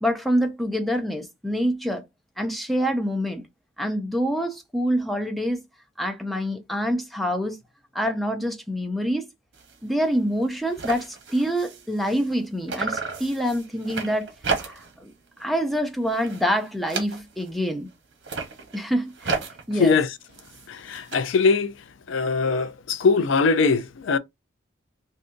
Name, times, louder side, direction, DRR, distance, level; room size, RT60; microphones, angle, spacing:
voice 1, 0.0-2.0 2.4-3.4 3.8-5.6 6.0-7.6 7.9-9.2 9.8-14.3 14.6-15.1 15.4-17.9 18.7-19.4 19.7-20.0, equal, ahead, 0.5 m, -26 dB
sound 1, 9.5-9.8 10.1-10.2 10.4-12.4 12.7-15.0 15.4-15.7 16.1-17.6 18.1-21.2, right 4 dB, 65° right, 0.8 m, -33 dB
voice 2, 20.7-21.7 22.1-24.2, left 4 dB, 80° left, 0.4 m, -21 dB
2.6 x 2.5 x 3.7 m
head